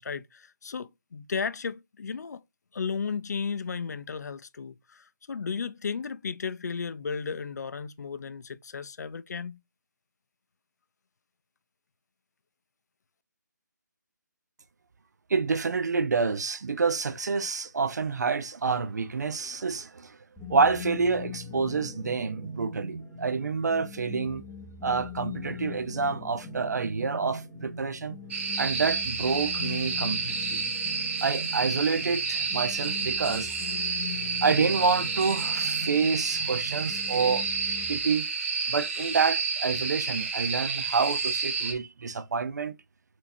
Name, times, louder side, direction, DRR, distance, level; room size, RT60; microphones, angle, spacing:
voice 1, 0.0-2.4 2.7-9.6, left 5 dB, 60° left, 0.5 m, -34 dB
voice 2, 15.3-20.2 20.5-24.4 24.8-28.2 28.6-30.6 31.2-33.9 34.4-37.5 37.9-38.3 38.7-42.7, right 5 dB, 60° right, 0.7 m, -28 dB
sound 1, 20.4-38.0, left 4 dB, ahead, 0.7 m, -41 dB
sound 2, 28.3-41.7, right 5 dB, 40° right, 1.2 m, -30 dB
6.3 x 2.8 x 2.7 m
figure-of-eight pair, 155°, 10 cm